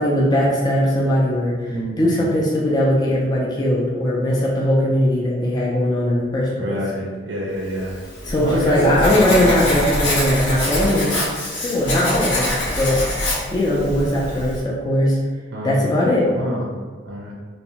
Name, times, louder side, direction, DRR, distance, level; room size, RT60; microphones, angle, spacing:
voice 1, 0.0-6.8 8.2-11.1 11.6-13.0 13.5-15.2 15.6-16.3, left 1 dB, 25° left, -5 dB, 0.3 m, -19 dB
voice 2, 1.7-2.2 6.6-8.0 8.4-9.7 15.5-15.8 16.2-16.7 17.1-17.3, equal, 75° right, -4 dB, 0.5 m, -27 dB
Writing, 7.9-14.6, left 1 dB, 85° left, 0.8 m, -24 dB
2.6 x 2.0 x 2.8 m, 1.5 s
head